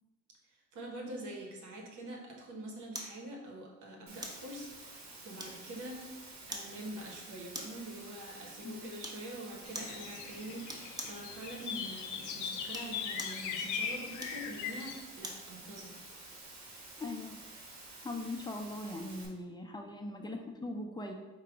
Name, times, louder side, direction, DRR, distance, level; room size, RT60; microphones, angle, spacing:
voice 1, 0.5-5.0 5.2-6.1 6.5-16.0, right 1 dB, 90° right, 0 dB, 1.1 m, -45 dB
sound 1, 2.9-3.2 4.2-4.5 5.4-5.8 6.5-6.7 7.5-7.9 9.0-9.3 9.7-10.0 10.7-11.2 12.6-13.4 14.2-15.5 15.9-16.1, equal, 15° right, 0.8 m, -43 dB
Water, 4.1-19.3, right 2 dB, 65° right, 1.2 m, -51 dB
sound 2, 9.7-15.0, left 7 dB, 80° left, 0.6 m, -40 dB
voice 2, 17.0-17.4 18.0-21.1, left 2 dB, 15° left, 2 dB, 0.5 m, -40 dB
4.8 x 2.2 x 4.7 m, 1.2 s
cardioid pair, 90°, 30 cm